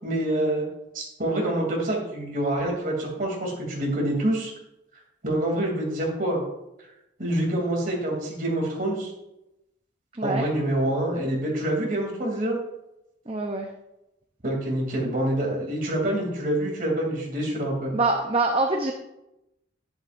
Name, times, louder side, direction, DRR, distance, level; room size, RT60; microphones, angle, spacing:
voice 1, 0.0-0.6 0.9-4.5 5.2-6.4 7.2-9.1 10.2-12.6 14.4-17.9, right 1 dB, 45° right, -1 dB, 2.9 m, -26 dB
voice 2, 13.3-13.7 17.9-18.9, right 2 dB, 30° right, 2 dB, 0.7 m, -24 dB
11.0 x 10.5 x 2.6 m, 0.89 s
head